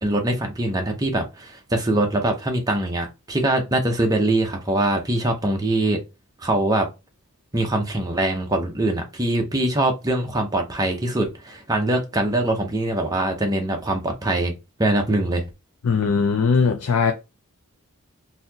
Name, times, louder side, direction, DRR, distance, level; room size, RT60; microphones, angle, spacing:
voice 1, 0.0-6.0 6.4-6.9 7.5-14.5 14.8-15.5, right 1 dB, 15° right, 0.7 m, -23 dB
voice 2, 15.8-17.1, left 5 dB, 75° left, 0.5 m, -19 dB
4.0 x 2.7 x 2.8 m
head